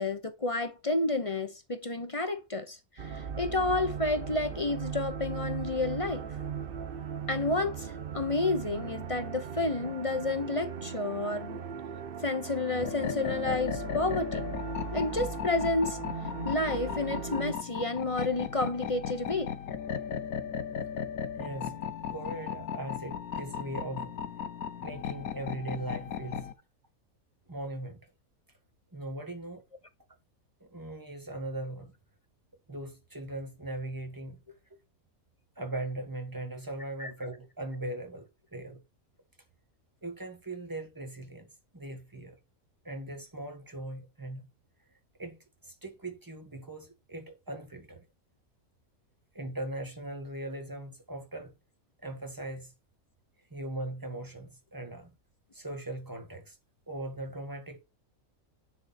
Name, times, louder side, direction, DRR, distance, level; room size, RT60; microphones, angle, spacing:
voice 1, 0.0-6.3 7.3-11.6 12.2-14.4 14.9-16.0 16.4-19.5 37.0-37.1, left 2 dB, 30° left, 0.7 m, -30 dB
sound 1, 3.0-17.5, right 6 dB, 45° right, 0.9 m, -38 dB
sound 2, 12.8-26.5, left 8 dB, 75° left, 1.4 m, -36 dB
voice 2, 21.4-21.8 22.1-24.1 24.8-26.5 27.5-28.0 28.9-29.6 30.6-31.9 32.7-34.4 35.5-38.8 40.0-42.4 42.8-44.5 45.2-48.0 49.3-51.5 52.0-52.7 53.5-55.1 55.5-56.6 56.9-57.8, right 1 dB, 15° right, 1.7 m, -39 dB
9.7 x 4.2 x 4.3 m
omnidirectional pair, 1.5 m